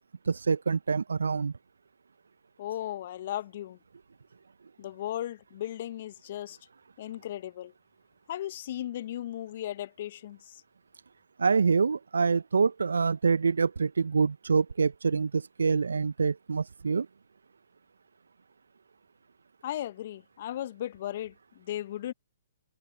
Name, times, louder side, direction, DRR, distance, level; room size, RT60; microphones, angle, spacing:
voice 1, 0.3-1.5 11.4-17.1, right 5 dB, 75° right, 0.9 m, -26 dB
voice 2, 2.6-3.8 4.8-6.6 7.0-7.7 8.3-10.4 19.6-21.3 21.7-22.1, left 12 dB, 50° left, 1.0 m, -36 dB
figure-of-eight pair, 125°, 0 cm